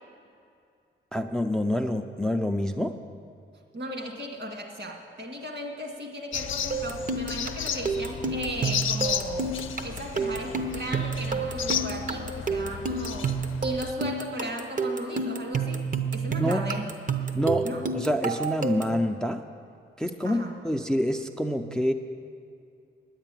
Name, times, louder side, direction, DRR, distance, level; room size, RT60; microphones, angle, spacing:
voice 1, 1.1-3.0 16.4-16.7 17.3-17.7 17.9-19.4 20.0-21.9, equal, 5° left, 6 dB, 0.5 m, -27 dB
voice 2, 3.7-9.5 9.8-13.3 13.6-16.9 17.6-17.8 20.2-20.5, equal, 60° right, 1 dB, 2.2 m, -36 dB
sound 1, 6.3-13.9, left 8 dB, 70° left, 0.6 m, -34 dB
sound 2, 6.7-19.0, right 4 dB, 40° right, 0.8 m, -30 dB
10.0 x 8.9 x 9.1 m, 2.4 s
cardioid pair, 105°, 21 cm